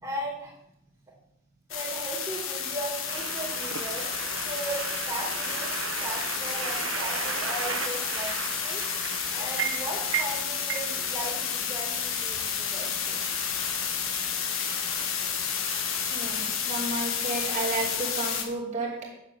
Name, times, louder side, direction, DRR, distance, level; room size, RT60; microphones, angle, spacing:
voice 1, 0.0-0.5 1.7-5.7 6.0-8.8 9.3-13.2, right 1 dB, 20° right, -3 dB, 2.9 m, -37 dB
sound 1, 1.7-18.4, left 7 dB, 70° left, 1.5 m, -31 dB
sound 2, 3.1-16.5, right 7 dB, 65° right, 0.8 m, -37 dB
voice 2, 16.1-19.1, right 2 dB, 35° right, -4 dB, 2.8 m, -32 dB
8.8 x 7.4 x 6.7 m, 0.77 s
head